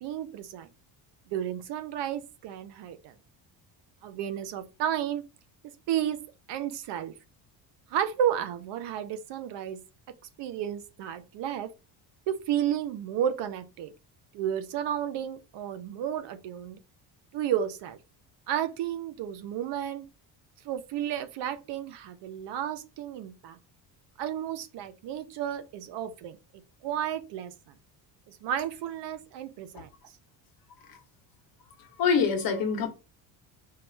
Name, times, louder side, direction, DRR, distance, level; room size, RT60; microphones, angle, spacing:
voice 1, 0.0-0.7 1.3-3.1 4.0-5.2 5.9-6.2 6.5-7.1 7.9-9.8 10.4-11.7 12.3-13.9 14.3-16.8 17.3-18.0 18.5-20.1 20.6-23.6 24.2-26.4 26.8-27.7 28.3-29.9, right 10 dB, 65° right, 0.7 m, -32 dB
voice 2, 32.0-32.9, left 6 dB, 50° left, 1.0 m, -25 dB
4.6 x 2.5 x 3.2 m
cardioid pair, 125°, 46 cm